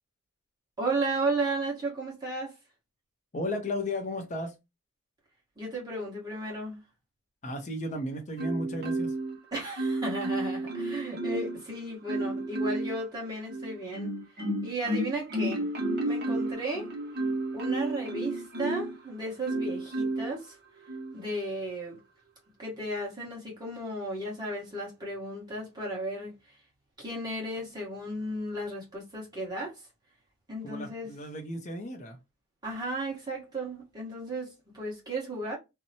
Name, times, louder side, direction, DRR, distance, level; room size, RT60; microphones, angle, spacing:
voice 1, 0.8-2.6 5.6-6.8 9.5-14.1 14.6-15.7 16.0-16.9 17.5-20.6 21.1-22.0 22.6-26.5 27.0-29.8 30.5-31.1 32.6-35.6, right 2 dB, 20° right, 1.1 m, -34 dB
voice 2, 3.3-4.6 7.4-9.1 30.6-32.2, left 1 dB, 30° left, 0.5 m, -34 dB
Marimba xylophone, 8.4-9.4 9.8-11.6 12.1-13.0 13.5-18.9 19.5-20.3 20.9-21.1, right 2 dB, 45° right, 0.8 m, -31 dB
2.7 x 2.1 x 2.7 m
head